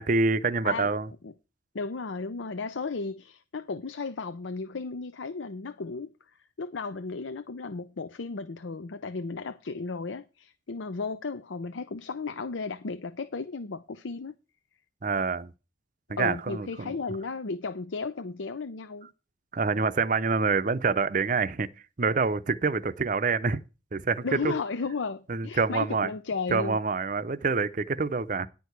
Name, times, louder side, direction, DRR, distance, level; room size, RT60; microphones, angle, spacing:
voice 1, 0.0-1.1 15.0-15.5 16.1-16.9 19.5-21.7 22.0-23.6 23.9-24.5 25.3-26.1 26.5-28.5, right 4 dB, 45° right, 0.6 m, -26 dB
voice 2, 1.7-6.1 6.6-14.3 16.2-19.1 24.2-26.8, left 4 dB, 85° left, 0.6 m, -34 dB
10.5 x 4.7 x 8.0 m
head